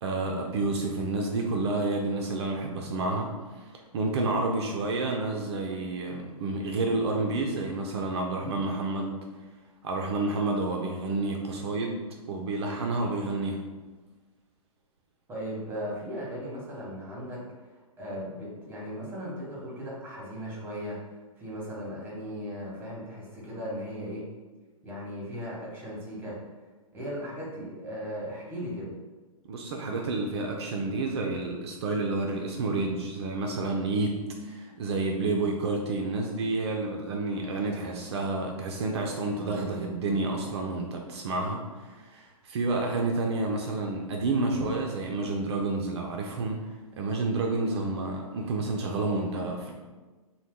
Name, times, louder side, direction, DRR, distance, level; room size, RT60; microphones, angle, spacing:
voice 1, 0.0-9.2 9.8-13.6 29.5-34.2 34.4-46.7 47.0-49.7, right 2 dB, 45° right, 1 dB, 0.4 m, -30 dB
voice 2, 15.3-17.7 18.0-21.0 21.4-24.2 24.8-26.4 26.9-28.9, equal, 10° right, -5 dB, 0.9 m, -37 dB
2.8 x 2.1 x 3.5 m, 1.3 s
hypercardioid pair, 125°, 19 cm